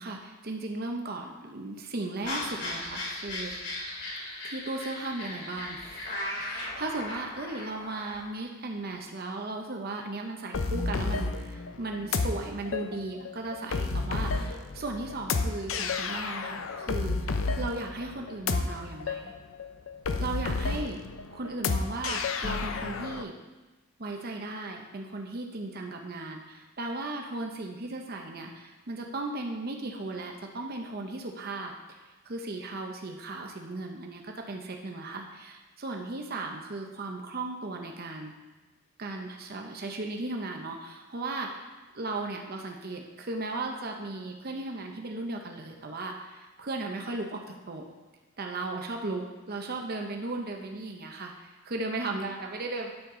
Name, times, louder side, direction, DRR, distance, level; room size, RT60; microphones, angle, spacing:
voice 1, 0.0-3.7 4.4-6.1 6.3-19.3 20.2-21.0 21.3-23.3 24.0-38.3 39.0-41.7 41.9-47.8 48.4-52.9, right 2 dB, 50° right, 2 dB, 0.8 m, -36 dB
sound 1, 2.2-8.2, left 1 dB, 60° left, 2.7 m, -37 dB
sound 2, 10.5-23.2, left 4 dB, 80° left, 0.6 m, -31 dB
9.6 x 7.3 x 3.8 m, 1.2 s
head